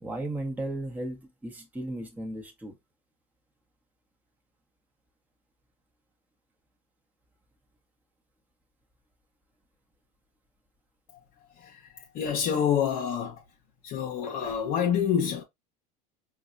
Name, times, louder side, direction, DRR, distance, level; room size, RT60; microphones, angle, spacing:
voice 1, 0.0-2.8, right 1 dB, 10° right, 0.9 m, -35 dB
voice 2, 11.6-13.4 13.8-15.4, left 8 dB, 50° left, 0.7 m, -27 dB
4.7 x 2.2 x 2.5 m
supercardioid pair, 110°, 19 cm